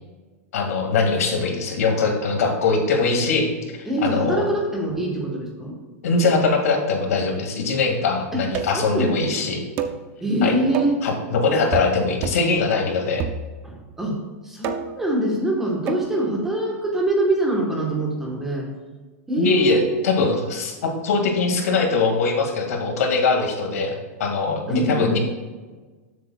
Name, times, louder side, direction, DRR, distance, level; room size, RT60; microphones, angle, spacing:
voice 1, 0.5-3.5 4.0-4.5 6.0-9.6 10.4-10.5 11.0-13.2 19.4-25.2, left 4 dB, 85° left, 3 dB, 2.0 m, -22 dB
voice 2, 3.9-5.7 8.3-8.4 8.7-9.6 10.2-11.0 13.6-14.2 14.4-18.7 19.3-20.0 24.7-25.2, right 1 dB, 5° right, -1 dB, 1.2 m, -24 dB
sound 1, 8.5-8.9 9.8-10.0 10.7-11.0 11.7-12.0 12.2-12.5 13.2-13.8 14.6-15.0 15.9-16.1, right 7 dB, 25° right, 0.5 m, -29 dB
12.5 x 7.5 x 2.3 m, 1.3 s
supercardioid pair, 175°, 8 cm